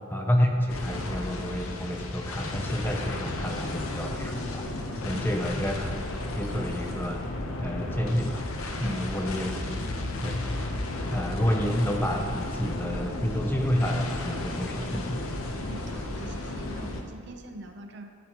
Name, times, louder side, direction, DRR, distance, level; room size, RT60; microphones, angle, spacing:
voice 1, 0.1-6.0 6.2-7.2 7.6-8.5 8.8-9.5 10.2-10.7 11.1-15.2, equal, 10° left, 2 dB, 0.6 m, -29 dB
sound 1, 0.7-17.0, left 2 dB, 80° left, 0.8 m, -33 dB
voice 2, 8.8-9.2 15.6-18.2, right 1 dB, 50° right, 5 dB, 0.6 m, -43 dB
12.0 x 8.5 x 3.0 m, 2.1 s
head